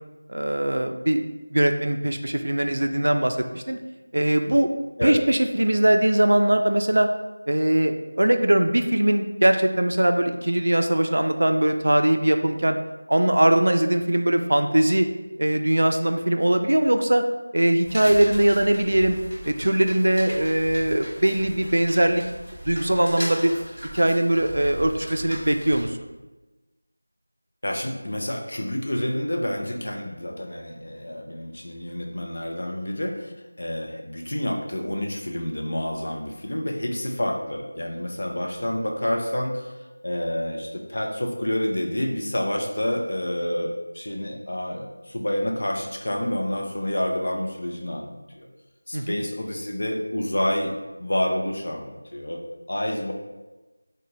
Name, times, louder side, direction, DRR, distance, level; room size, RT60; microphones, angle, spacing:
voice 1, 0.3-1.2 1.5-3.8 4.1-4.7 5.0-7.1 7.5-12.8 13.1-15.1 15.4-17.2 17.5-19.2 19.4-22.2 22.6-23.5 23.9-26.0 48.9-49.2, right 1 dB, 70° right, 6 dB, 0.3 m, -21 dB
sound 1, 17.8-25.8, equal, ahead, 0.9 m, -38 dB
voice 2, 27.6-33.3 33.6-39.7 40.0-48.5 48.9-50.7 51.0-52.4 52.7-53.1, left 1 dB, 50° left, 1 dB, 0.5 m, -28 dB
3.7 x 2.1 x 3.2 m, 1.1 s
figure-of-eight pair, 175°, 0 cm